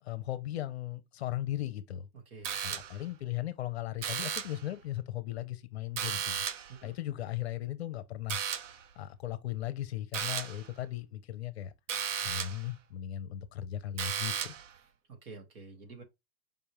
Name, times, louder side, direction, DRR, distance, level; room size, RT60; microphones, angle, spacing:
voice 1, 0.0-2.1 2.6-6.4 6.8-8.4 9.0-11.7 12.2-14.5, left 13 dB, 45° left, 0.7 m, -37 dB
voice 2, 2.1-2.8 6.8-6.9 15.1-16.0, right 3 dB, 75° right, 2.4 m, -49 dB
sound 1, 2.4-3.1 4.0-4.7 6.0-6.8 8.3-8.8 10.1-10.7 11.9-12.7 14.0-14.7, right 8 dB, 55° right, 0.8 m, -35 dB
5.2 x 3.5 x 2.9 m
hypercardioid pair, 165°, 44 cm